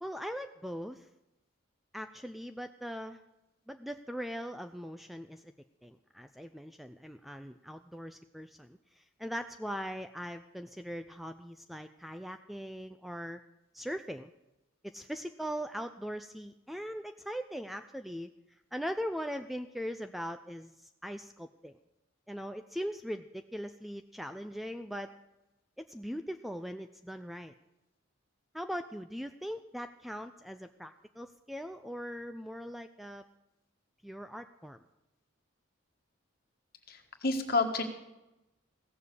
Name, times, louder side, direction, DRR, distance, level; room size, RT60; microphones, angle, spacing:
voice 1, 0.0-1.1 1.9-3.2 3.7-5.5 5.8-13.4 13.7-14.3 14.8-18.3 18.7-21.7 22.3-25.1 25.8-27.5 28.5-33.2 34.0-34.8, equal, ahead, 8 dB, 0.4 m, -40 dB
voice 2, 36.9-37.8, left 3 dB, 45° left, 6 dB, 1.6 m, -30 dB
16.0 x 7.1 x 8.4 m, 0.96 s
head